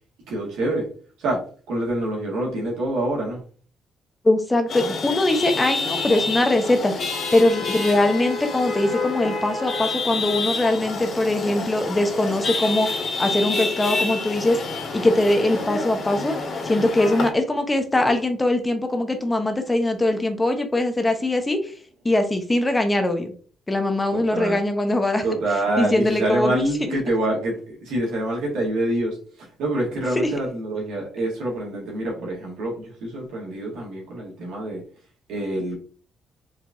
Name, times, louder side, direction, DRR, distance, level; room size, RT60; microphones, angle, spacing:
voice 1, 0.3-0.9 1.2-3.4 24.1-24.6 25.2-34.8 35.3-35.8, right 1 dB, 90° right, -2 dB, 1.9 m, -26 dB
voice 2, 4.2-12.9 13.2-14.6 14.9-16.4 16.6-21.7 22.0-23.3 23.7-25.2 25.8-26.6, left 1 dB, 20° left, 6 dB, 0.8 m, -21 dB
Chatter / Vehicle horn car horn honking / Traffic noise roadway noise, 4.7-17.3, left 3 dB, 55° left, 1.8 m, -28 dB
4.7 x 3.5 x 2.6 m, 0.41 s
cardioid pair, 90°, 0 cm